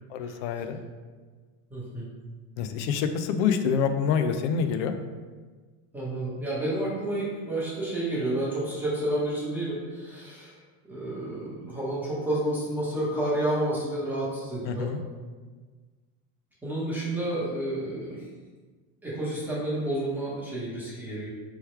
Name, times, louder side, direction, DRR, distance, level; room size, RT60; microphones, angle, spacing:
voice 1, 0.1-0.8 2.6-4.9 14.7-15.0, left 6 dB, 70° left, 8 dB, 0.5 m, -26 dB
voice 2, 1.7-2.1 5.9-14.9 16.6-18.2 19.0-21.3, right 1 dB, 5° right, -10 dB, 0.9 m, -30 dB
3.4 x 3.1 x 4.4 m, 1.4 s
cardioid pair, 170°, 37 cm